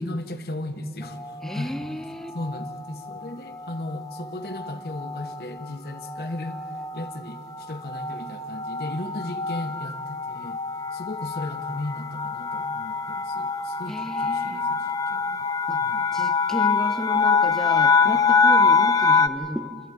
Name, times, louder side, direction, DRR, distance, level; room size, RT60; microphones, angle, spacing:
voice 1, 0.0-1.8 2.3-6.6 6.9-10.6 10.9-15.5 15.8-16.1, left 1 dB, 60° left, 6 dB, 1.0 m, -35 dB
sound 1, 1.1-1.6 2.4-2.8 3.1-3.3 3.5-19.3, left 5 dB, 20° left, 0.5 m, -25 dB
voice 2, 1.4-2.4 13.9-14.6 15.7-15.9 16.1-19.7, equal, ahead, 7 dB, 0.8 m, -33 dB
28.0 x 13.0 x 9.1 m, 2.6 s
head